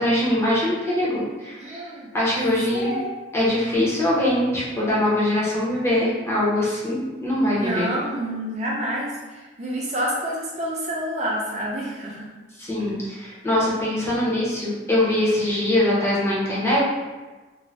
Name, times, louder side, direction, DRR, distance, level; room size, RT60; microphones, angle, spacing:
voice 1, 0.0-1.6 2.1-2.9 3.3-7.9 12.6-16.8, left 1 dB, 15° left, -7 dB, 0.6 m, -22 dB
voice 2, 1.5-2.1 2.4-3.0 7.5-12.3, equal, 35° right, -4 dB, 0.5 m, -28 dB
2.5 x 2.1 x 3.1 m, 1.2 s
head